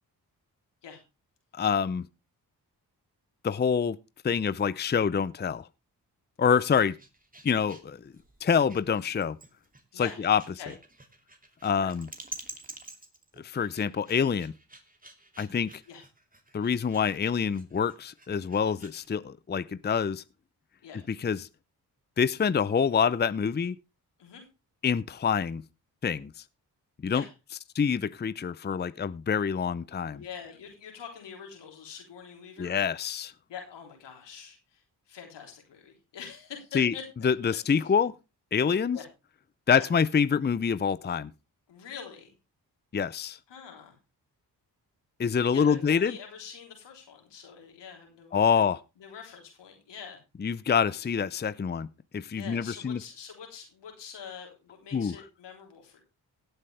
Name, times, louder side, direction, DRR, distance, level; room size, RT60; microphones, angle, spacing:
voice 1, 1.5-2.1 3.4-4.0 4.2-5.7 6.4-7.0 7.4-8.0 8.4-9.4 9.9-10.4 11.6-12.1 13.4-14.5 15.4-15.7 16.5-20.2 21.1-21.5 22.2-23.8 24.8-25.6 26.0-26.3 27.0-27.2 27.7-30.2 32.6-33.3 36.7-36.9 37.2-38.1 38.5-39.0 39.7-41.3 42.9-43.4 45.2-46.2 48.3-48.8 50.4-53.0 54.9-55.1, left 6 dB, 25° left, 0.6 m, -26 dB
sound 1, 6.4-19.1, right 2 dB, 20° right, 2.8 m, -49 dB
voice 2, 30.1-32.8 33.5-37.9 38.9-39.1 39.7-39.9 41.7-42.3 43.5-44.0 45.5-48.7 49.0-50.2 52.3-56.0, left 7 dB, 85° left, 3.6 m, -45 dB
17.0 x 8.2 x 3.4 m
supercardioid pair, 45°, 41 cm